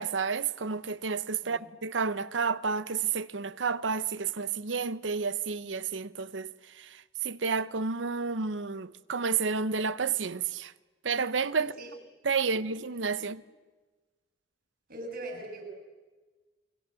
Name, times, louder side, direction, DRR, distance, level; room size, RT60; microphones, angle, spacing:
voice 1, 0.0-10.7 11.0-11.7 12.2-13.4, right 5 dB, 90° right, 0.8 m, -31 dB
voice 2, 11.6-12.0 12.4-12.5 13.2-13.3 14.9-15.6, right 1 dB, 55° right, 6.8 m, -41 dB
29.0 x 22.0 x 7.6 m
head